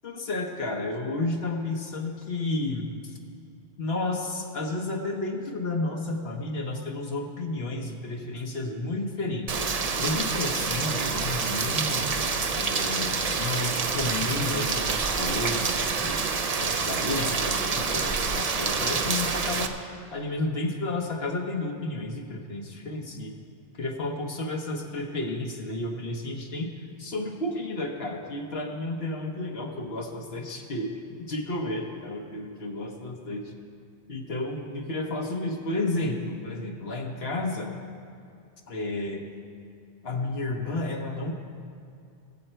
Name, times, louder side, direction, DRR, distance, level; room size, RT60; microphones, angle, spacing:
voice 1, 0.0-3.2 3.8-9.6 10.0-12.0 12.5-16.2 16.6-19.7 20.1-23.3 23.7-26.7 27.0-30.9 31.3-33.5 34.1-37.7 38.7-39.2 40.0-41.3, left 2 dB, 65° left, 2 dB, 1.4 m, -31 dB
Rain, 9.5-19.7, right 4 dB, 40° right, 0.6 m, -27 dB
20.0 x 7.9 x 4.4 m, 2.4 s
omnidirectional pair, 1.1 m